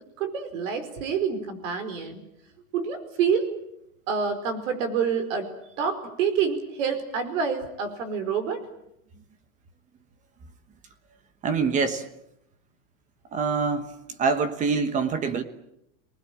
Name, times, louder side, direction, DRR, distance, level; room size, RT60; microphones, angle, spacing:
voice 1, 0.2-2.2 2.7-3.5 4.1-5.5 5.8-8.6, right 6 dB, 60° right, 11 dB, 4.9 m, -27 dB
voice 2, 11.4-12.1 13.3-13.9 14.2-15.4, right 5 dB, 15° right, 11 dB, 1.3 m, -25 dB
26.5 x 20.0 x 8.9 m, 0.81 s
supercardioid pair, 170°, 43 cm